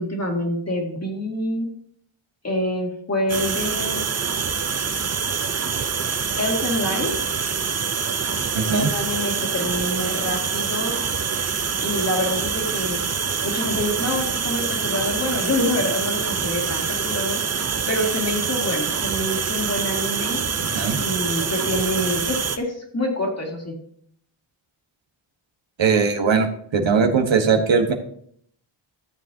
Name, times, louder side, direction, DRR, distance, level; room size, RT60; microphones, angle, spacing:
voice 1, 0.0-1.7 2.4-4.1 6.4-7.1 8.7-11.0 11.8-13.0 13.4-17.4 17.9-20.4 21.0-23.8, left 1 dB, 30° left, 1 dB, 2.3 m, -26 dB
sound 1, 3.3-22.6, right 6 dB, 35° right, 0.6 m, -25 dB
voice 2, 8.5-8.9 20.7-21.0 25.8-26.5 26.7-27.9, right 5 dB, 65° right, 4 dB, 1.3 m, -19 dB
13.5 x 7.4 x 2.8 m, 0.65 s
wide cardioid pair, 80°, 48 cm